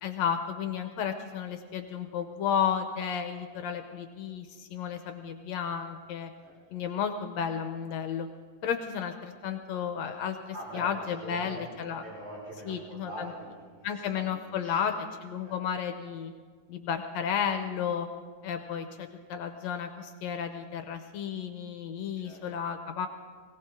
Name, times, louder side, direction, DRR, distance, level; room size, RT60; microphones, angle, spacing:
voice 1, 0.0-6.3 6.7-8.3 8.6-12.0 12.7-13.3 13.8-14.9 15.2-16.3 16.7-18.1 18.4-23.1, left 8 dB, 75° left, 7 dB, 1.9 m, -33 dB
voice 2, 10.5-10.9 11.1-15.0 15.4-15.6 22.2-22.4, right 1 dB, 90° right, -7 dB, 6.0 m, -44 dB
21.5 x 17.5 x 3.7 m, 1.5 s
omnidirectional pair, 3.5 m